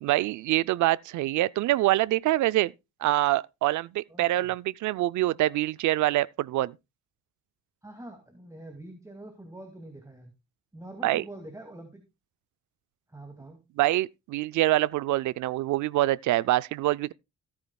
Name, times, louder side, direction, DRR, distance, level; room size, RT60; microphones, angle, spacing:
voice 1, 0.0-2.7 3.0-6.8 11.0-11.2 13.8-17.1, right 16 dB, 75° right, 0.5 m, -25 dB
voice 2, 4.1-4.5 7.8-10.3 10.7-12.0 13.1-13.6, right 1 dB, 10° right, 2.3 m, -45 dB
17.0 x 9.6 x 2.3 m
cardioid pair, 90°, 30 cm